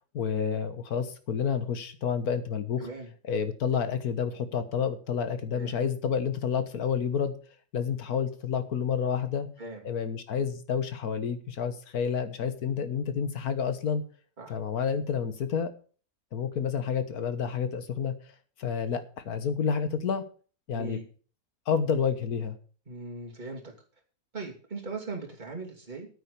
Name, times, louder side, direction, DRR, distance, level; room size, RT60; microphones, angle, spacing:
voice 1, 0.1-2.9 3.2-7.3 7.7-9.5 9.8-14.0 14.5-15.7 16.3-18.1 18.6-20.2 20.7-21.0 21.7-22.6, left 7 dB, 70° left, 11 dB, 1.7 m, -29 dB
voice 2, 22.9-23.7 24.3-26.1, right 3 dB, 30° right, -1 dB, 2.8 m, -39 dB
9.2 x 9.0 x 6.9 m, 0.41 s
omnidirectional pair, 1.7 m